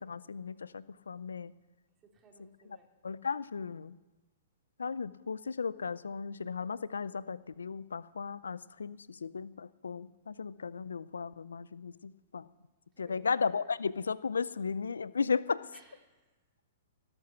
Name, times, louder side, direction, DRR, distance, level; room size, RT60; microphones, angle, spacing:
voice 1, 0.0-1.5 3.0-3.9 4.8-12.4 13.0-15.6, left 5 dB, 85° left, 19 dB, 0.5 m, -35 dB
voice 2, 2.1-2.9 13.0-13.3 15.7-16.3, right 3 dB, 25° right, 1 dB, 3.3 m, -61 dB
18.0 x 9.7 x 5.9 m, 1.1 s
hypercardioid pair, 120°, 0 cm